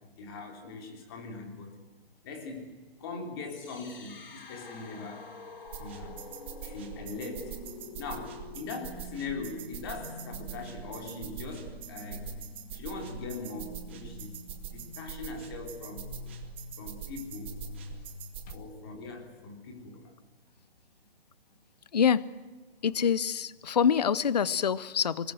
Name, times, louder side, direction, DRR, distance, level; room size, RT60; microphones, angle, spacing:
voice 1, 0.0-1.8 2.2-2.7 3.0-5.3 5.7-6.2 6.6-7.6 8.0-12.3 12.7-14.3 14.7-16.1 16.8-17.5 18.5-20.1, left 4 dB, 25° left, 2 dB, 3.3 m, -41 dB
sound 1, 3.4-19.4, left 2 dB, 60° left, 4.7 m, -46 dB
sound 2, 5.7-18.5, right 9 dB, 10° right, 0.8 m, -44 dB
voice 2, 21.9-22.2 22.8-25.3, left 7 dB, 40° left, 19 dB, 0.6 m, -26 dB
26.5 x 20.0 x 7.7 m, 1.3 s
hypercardioid pair, 170°, 31 cm